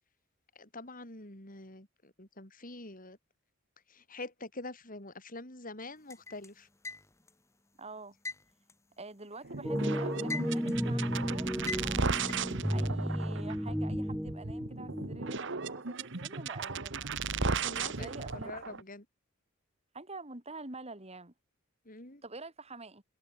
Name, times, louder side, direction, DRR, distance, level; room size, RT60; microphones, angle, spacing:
voice 1, 0.5-3.2 3.9-6.7 17.6-19.1 21.8-22.2, left 2 dB, 40° left, 5.9 m, -45 dB
sound 1, 6.1-7.4 8.2-9.6 10.0-10.9 11.7-12.5, left 3 dB, 15° left, 2.3 m, -41 dB
voice 2, 7.8-8.2 9.0-12.2 12.7-17.1 17.7-18.6 19.9-21.3 22.2-23.0, right 3 dB, 30° right, 3.8 m, -47 dB
sound 2, 9.4-18.8, right 4 dB, 60° right, 1.5 m, -36 dB
sound 3, 9.6-15.4, equal, ahead, 3.0 m, -33 dB
head